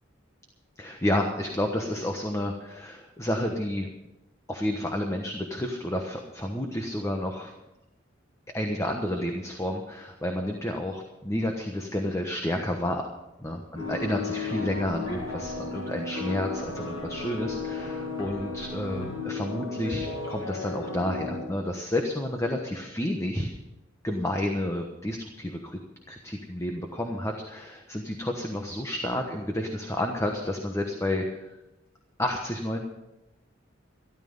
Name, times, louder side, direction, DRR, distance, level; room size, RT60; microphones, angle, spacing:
voice 1, 0.8-3.9 4.5-7.5 8.5-13.1 13.4-23.5 24.0-25.8 26.1-31.5 32.2-32.8, left 1 dB, 15° left, 3 dB, 1.2 m, -30 dB
sound 1, 13.7-21.4, left 3 dB, 90° left, 5.7 m, -34 dB
13.0 x 13.0 x 5.4 m, 0.96 s
head